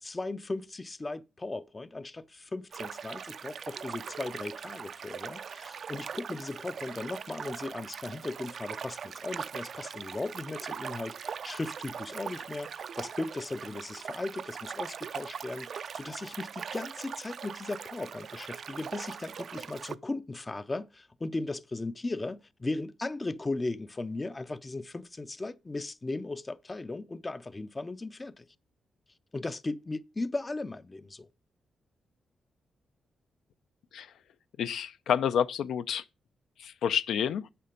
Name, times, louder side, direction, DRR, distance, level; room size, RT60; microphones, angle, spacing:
voice 1, 0.0-28.5 29.3-31.3, left 2 dB, 20° left, 0.4 m, -37 dB
sound 1, 2.7-20.0, right 7 dB, 55° right, 0.4 m, -41 dB
voice 2, 34.6-36.0 36.6-37.5, left 8 dB, 90° left, 0.5 m, -29 dB
8.5 x 6.8 x 5.1 m
wide cardioid pair, 140°, 0 cm